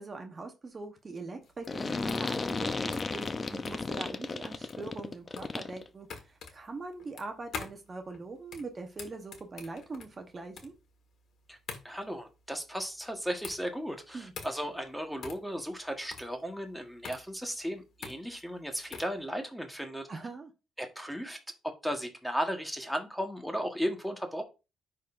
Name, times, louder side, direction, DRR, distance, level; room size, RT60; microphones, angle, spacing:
voice 1, 0.0-10.7 14.1-14.3 20.1-20.5, right 3 dB, 35° right, 5 dB, 1.0 m, -42 dB
sound 1, 1.4-19.2, left 5 dB, 65° left, 1.5 m, -46 dB
sound 2, 1.7-5.9, left 3 dB, 30° left, 0.5 m, -34 dB
voice 2, 11.8-20.1 20.8-21.4 21.8-24.4, equal, ahead, 4 dB, 1.3 m, -35 dB
10.5 x 3.9 x 2.6 m, 0.28 s
cardioid pair, 90°, 0 cm